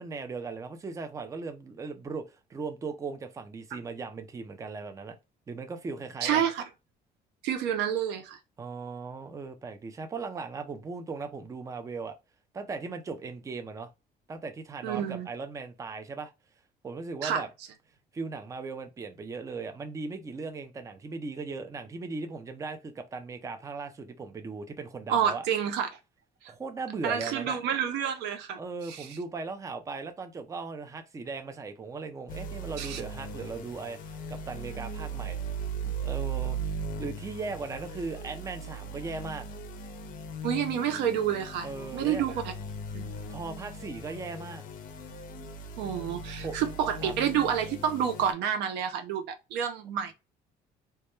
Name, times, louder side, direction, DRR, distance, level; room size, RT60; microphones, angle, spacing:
voice 1, 0.0-5.2 5.5-6.4 8.6-12.2 12.5-13.9 14.3-16.3 16.8-17.5 18.1-25.5 26.5-27.6 28.6-35.4 35.8-39.5 41.6-42.3 43.3-44.6 46.4-46.6 47.0-47.1, right 4 dB, 20° right, 0.4 m, -38 dB
voice 2, 6.2-6.6 7.4-8.4 14.8-15.3 17.2-17.4 25.1-25.9 27.0-28.6 28.9-29.1 32.8-33.0 40.4-42.5 42.9-43.1 45.8-50.1, right 9 dB, 90° right, 0.5 m, -29 dB
sound 1, 32.3-48.3, right 3 dB, 55° left, 0.5 m, -38 dB
2.2 x 2.1 x 2.9 m
cardioid pair, 110°, 17 cm